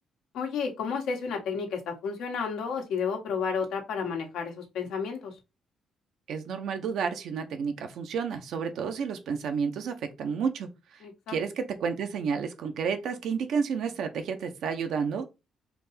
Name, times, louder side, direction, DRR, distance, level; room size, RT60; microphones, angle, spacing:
voice 1, 0.3-5.4 11.0-11.4, left 6 dB, 85° left, 1.3 m, -31 dB
voice 2, 6.3-11.0 11.3-15.3, right 6 dB, 75° right, 0.9 m, -31 dB
4.4 x 2.8 x 4.1 m
cardioid pair, 90°, 0 cm